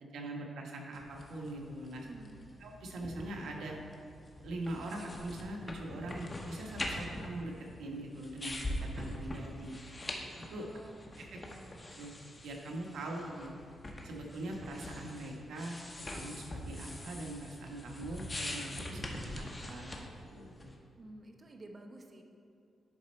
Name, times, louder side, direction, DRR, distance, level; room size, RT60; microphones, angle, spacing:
voice 1, 0.0-2.1 2.6-3.8 4.4-7.5 7.8-9.7 10.5-10.6 11.2-11.3 11.9-12.1 12.4-13.5 14.0-15.8 16.1-20.1 20.3-20.7, right 1 dB, 85° right, 0 dB, 1.1 m, -42 dB
sound 1, 0.9-20.7, left 1 dB, 25° left, 1.0 m, -44 dB
voice 2, 2.0-2.5 10.6-10.9 11.3-11.6 21.0-22.2, right 1 dB, 35° right, 3 dB, 0.8 m, -51 dB
11.0 x 4.3 x 4.3 m, 2.6 s
cardioid pair, 100°, 0 cm